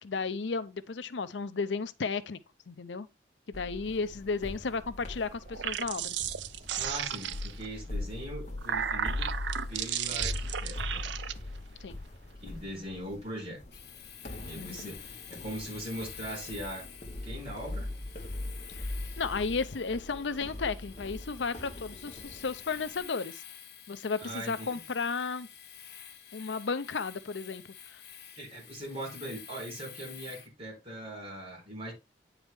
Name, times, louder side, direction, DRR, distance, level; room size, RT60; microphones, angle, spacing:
voice 1, 0.0-2.4 2.7-3.1 3.5-6.1 11.8-12.0 14.5-14.9 18.8-18.9 19.2-23.4 23.9-25.5 26.3-27.6 27.9-28.0, left 4 dB, 85° left, 0.6 m, -34 dB
sound 1, 3.5-23.0, left 2 dB, 40° left, 1.5 m, -41 dB
sound 2, 5.4-7.7 8.3-11.3, right 9 dB, 80° right, 0.5 m, -34 dB
voice 2, 6.7-9.3 9.7-11.1 11.7-11.8 12.4-13.6 14.4-16.9 17.2-17.9 24.2-24.7 28.4-31.9, right 1 dB, 35° right, 4.2 m, -40 dB
Domestic sounds home sounds, 13.7-30.5, left 9 dB, 65° left, 1.5 m, -49 dB
9.2 x 4.8 x 3.5 m
head